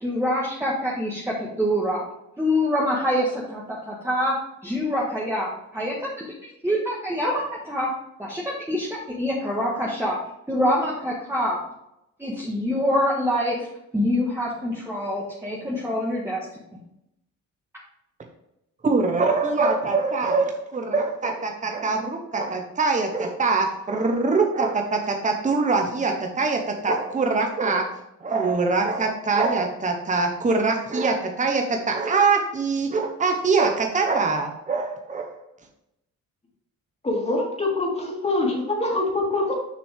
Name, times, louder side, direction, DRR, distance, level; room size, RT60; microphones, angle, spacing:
voice 1, 0.0-2.0 2.4-4.3 4.6-7.9 8.2-10.2 10.5-11.6 12.2-13.7 13.9-16.5 16.7-16.8, equal, 10° right, -5 dB, 1.7 m, -25 dB
voice 2, 18.8-27.9 28.2-35.4, right 4 dB, 25° right, 3 dB, 1.1 m, -23 dB
voice 3, 37.0-39.5, left 2 dB, 20° left, -1 dB, 2.6 m, -24 dB
7.0 x 6.0 x 3.6 m, 0.83 s
cardioid pair, 90°, 30 cm